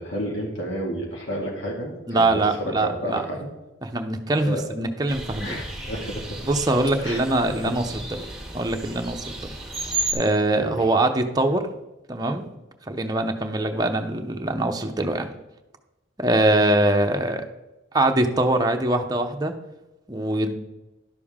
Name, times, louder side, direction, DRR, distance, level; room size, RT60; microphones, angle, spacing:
voice 1, 0.0-3.5 4.4-4.6 5.4-6.5 7.0-7.2 7.6-7.7 10.6-10.7, equal, 75° left, -1 dB, 1.9 m, -31 dB
voice 2, 2.1-3.3 3.8-5.6 6.4-8.3 8.5-9.5 10.1-11.7 12.1-12.5 12.9-15.3 16.2-17.4 17.9-19.5 20.1-20.5, right 2 dB, 20° right, 4 dB, 0.7 m, -23 dB
sound 1, 5.1-10.1, right 2 dB, 5° right, 1.5 m, -33 dB
11.0 x 6.8 x 3.6 m, 1.0 s
head